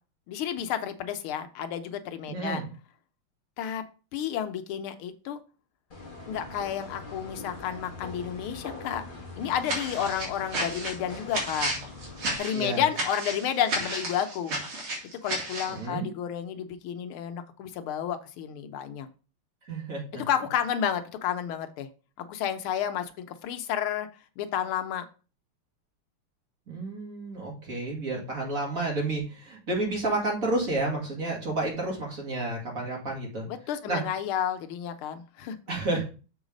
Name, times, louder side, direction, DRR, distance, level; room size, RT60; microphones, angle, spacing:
voice 1, 0.3-2.6 3.6-3.8 4.1-5.4 6.3-9.0 9.4-11.7 12.4-14.5 15.0-19.1 20.1-21.9 22.2-24.1 24.4-25.0 33.4-35.6, left 9 dB, 90° left, 8 dB, 1.6 m, -31 dB
voice 2, 2.3-2.7 12.5-12.8 15.7-16.1 19.6-20.2 26.7-33.5 33.9-34.0 35.7-36.1, right 2 dB, 40° right, -1 dB, 2.5 m, -30 dB
sound 1, 5.9-12.4, left 3 dB, 25° left, 1.5 m, -43 dB
sound 2, 9.6-15.8, right 1 dB, 70° right, 3.1 m, -32 dB
7.2 x 4.0 x 5.1 m, 0.35 s
omnidirectional pair, 2.3 m